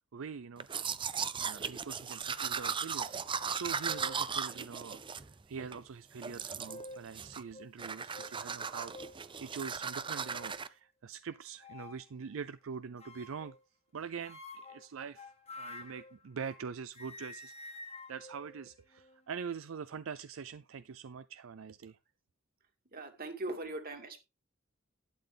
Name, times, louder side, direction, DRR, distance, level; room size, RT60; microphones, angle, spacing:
voice 1, 0.1-0.9 1.4-13.6 13.9-15.3 15.6-17.7 18.1-22.0, right 6 dB, 80° right, 0.5 m, -44 dB
Domestic sounds home sounds, 0.6-5.8 6.2-6.9 7.1-7.5 7.8-10.7, right 6 dB, 25° right, 0.5 m, -37 dB
sound 1, 3.9-4.3 5.0-5.1 6.4-7.1 7.5-7.7 8.1-8.3 8.9-9.2 9.9-10.6 11.6-12.0 13.0-13.6 14.2-16.7 16.9-19.3, left 2 dB, 30° left, 1.3 m, -49 dB
voice 2, 22.9-24.2, right 2 dB, 45° right, 2.5 m, -40 dB
11.5 x 9.0 x 3.5 m
head